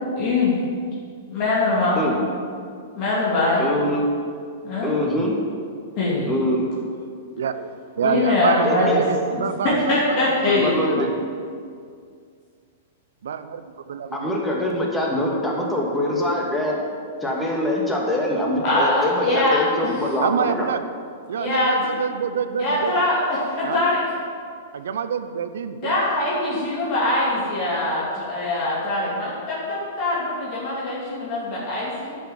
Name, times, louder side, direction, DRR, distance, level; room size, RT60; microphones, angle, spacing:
voice 1, 0.2-0.5 1.3-2.0 3.0-3.6 4.6-5.0 6.0-6.3 8.0-9.0 9.3-10.8 18.6-19.9 21.4-21.7 22.6-24.1 25.7-32.2, left 2 dB, 45° left, -7 dB, 2.9 m, -22 dB
voice 2, 3.6-4.0 4.8-5.4 6.3-6.7 8.6-9.0 10.4-11.1 14.1-16.8 17.2-20.7, left 1 dB, 10° left, -2 dB, 2.3 m, -24 dB
voice 3, 7.4-7.7 8.0-11.1 13.2-13.6 13.9-14.4 20.2-20.8 21.3-22.9 23.6-23.8 24.7-25.9, right 7 dB, 75° right, 11 dB, 0.7 m, -27 dB
10.0 x 6.0 x 7.3 m, 2.2 s
hypercardioid pair, 115°, 0 cm